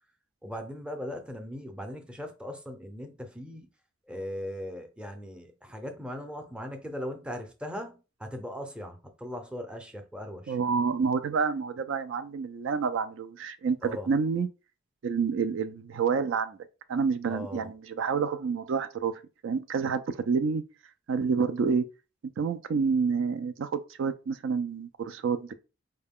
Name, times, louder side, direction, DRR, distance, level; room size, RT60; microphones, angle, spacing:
voice 1, 0.4-3.7 4.1-10.6 13.8-14.1 17.3-17.7, left 1 dB, 5° right, 0.6 m, -39 dB
voice 2, 10.5-14.5 15.0-16.6 16.9-19.1 19.4-20.6 21.1-21.8 22.4-25.5, right 5 dB, 65° right, 0.4 m, -28 dB
4.6 x 2.2 x 3.5 m
head